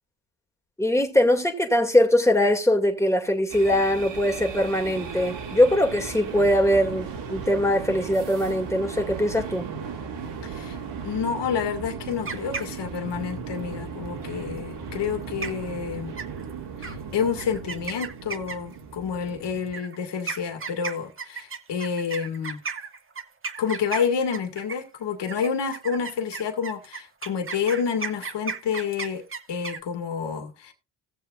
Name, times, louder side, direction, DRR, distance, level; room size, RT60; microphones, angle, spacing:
voice 1, 0.8-9.7, left 1 dB, 5° left, 2.2 m, -22 dB
sound 1, 3.5-19.8, right 6 dB, 75° right, 2.7 m, -36 dB
voice 2, 10.4-10.8 11.0-16.1 16.8-22.6 23.6-29.2 29.5-30.7, left 6 dB, 70° left, 2.0 m, -29 dB
sound 2, 12.1-13.1 15.0-15.2 15.4-15.8 16.2-16.5 16.8-17.0 17.4-18.8 19.7-24.9 25.3-29.8, right 5 dB, 30° right, 1.1 m, -34 dB
17.5 x 7.1 x 2.5 m
cardioid pair, 80°, 44 cm